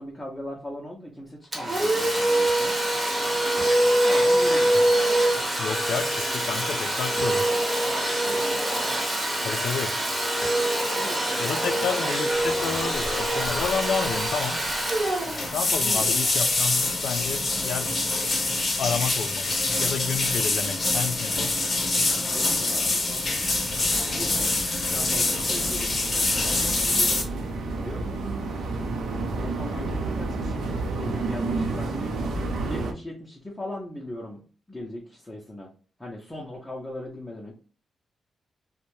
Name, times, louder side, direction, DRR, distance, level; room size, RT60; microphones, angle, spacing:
voice 1, 0.0-2.7 4.0-4.8 8.2-8.9 10.9-11.9 15.2-15.5 15.8-16.1 22.1-23.2 23.7-24.4 24.8-27.1 27.7-28.2 29.4-32.1 32.6-35.7 36.0-37.5, left 1 dB, 10° left, 0.5 m, -39 dB
Domestic sounds home sounds, 1.5-17.0, right 1 dB, 15° right, 0.8 m, -24 dB
voice 2, 5.6-7.5 9.4-10.0 11.4-14.6 15.5-17.9 18.8-21.6, left 6 dB, 85° left, 0.3 m, -30 dB
sound 1, 12.9-13.2 13.4-13.8 14.0-14.1 15.1-27.2, left 2 dB, 30° left, 0.8 m, -25 dB
sound 2, 22.9-32.9, right 3 dB, 75° right, 0.5 m, -31 dB
2.7 x 2.1 x 3.0 m
wide cardioid pair, 150°, 0 cm